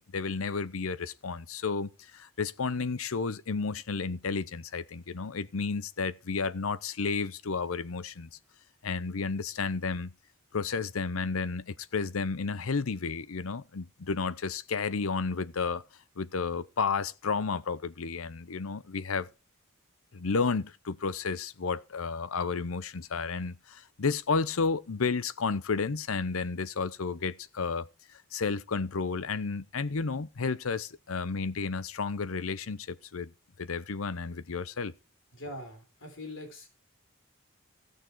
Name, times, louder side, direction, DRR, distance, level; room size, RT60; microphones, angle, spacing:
voice 1, 0.0-8.3 8.8-10.1 10.5-15.8 16.2-19.3 20.1-33.3 33.6-34.9, left 4 dB, 80° left, 0.7 m, -32 dB
voice 2, 35.3-36.7, left 1 dB, 60° left, 3.7 m, -42 dB
16.0 x 6.5 x 4.6 m
head